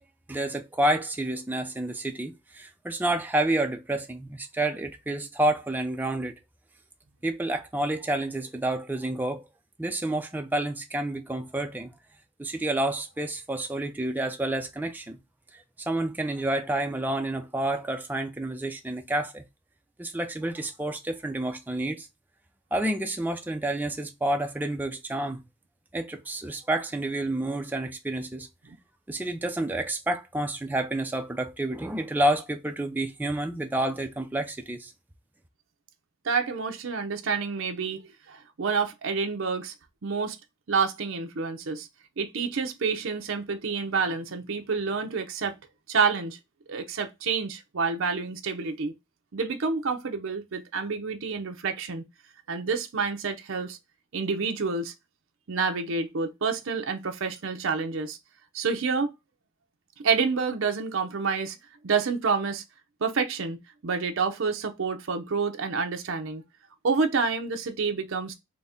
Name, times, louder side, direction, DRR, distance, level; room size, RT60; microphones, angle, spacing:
voice 1, 0.3-6.3 7.2-9.5 9.8-11.9 12.4-15.2 15.9-19.4 20.0-22.1 22.7-25.4 25.9-28.5 29.1-34.9, right 1 dB, 10° right, 0.4 m, -29 dB
voice 2, 36.2-39.7 40.0-40.4 40.7-41.9 42.2-45.6 45.9-46.4 46.7-48.9 49.3-52.0 52.5-53.8 54.1-54.9 55.5-58.2 58.5-59.1 60.0-61.6 61.8-62.6 63.0-63.6 63.8-66.4 66.8-68.3, right 5 dB, 60° right, 0.6 m, -28 dB
4.0 x 2.1 x 3.5 m
head